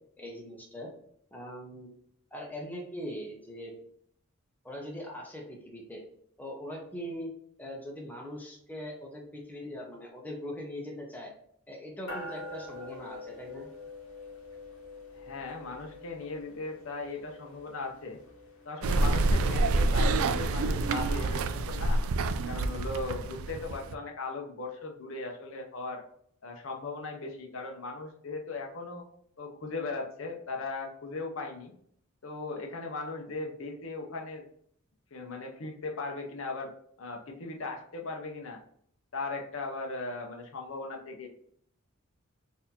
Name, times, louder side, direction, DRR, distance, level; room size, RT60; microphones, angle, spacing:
voice 1, 0.2-0.9 1.3-1.9 2.3-3.7 4.6-6.0 6.4-7.3 7.6-11.3 11.7-13.7, equal, 10° left, -2 dB, 0.7 m, -41 dB
sound 1, 12.1-19.8, left 2 dB, 90° left, 1.1 m, -46 dB
voice 2, 15.2-18.2 18.6-22.0 22.5-26.0 26.4-29.0 29.4-31.7 32.2-34.4 35.1-36.7 37.0-38.6 39.1-41.3, left 3 dB, 70° left, 2 dB, 0.6 m, -38 dB
sound 2, 18.8-24.0, right 2 dB, 75° right, 0.3 m, -27 dB
4.2 x 2.7 x 2.7 m, 0.65 s
head